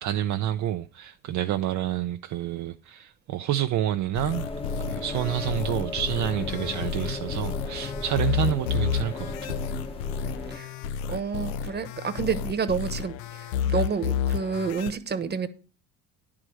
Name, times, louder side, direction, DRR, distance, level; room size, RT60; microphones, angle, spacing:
voice 1, 0.0-4.5 4.8-9.6, right 12 dB, 50° right, 0.6 m, -28 dB
sound 1, 4.1-14.9, left 7 dB, 85° left, 0.7 m, -31 dB
sound 2, 4.3-10.6, left 3 dB, 15° left, 1.0 m, -35 dB
sound 3, 6.4-7.9 8.1-9.9, left 10 dB, 40° left, 0.6 m, -44 dB
voice 2, 11.1-15.5, right 6 dB, 25° right, 1.1 m, -29 dB
9.9 x 4.9 x 7.6 m
supercardioid pair, 100°, 37 cm